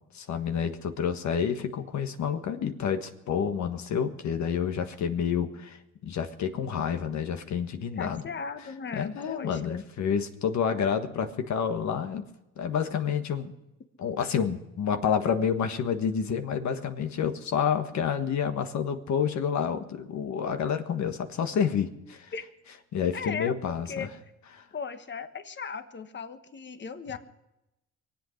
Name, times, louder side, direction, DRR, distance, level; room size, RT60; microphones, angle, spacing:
voice 1, 0.1-5.8 6.0-8.2 8.9-12.2 12.6-13.5 14.0-22.3 22.9-24.1, left 7 dB, 65° left, 7 dB, 1.5 m, -29 dB
voice 2, 8.0-9.8 22.3-22.4 23.1-24.1 24.7-27.2, left 5 dB, 35° left, 10 dB, 1.3 m, -37 dB
23.5 x 8.2 x 6.5 m, 0.92 s
cardioid pair, 90°, 30 cm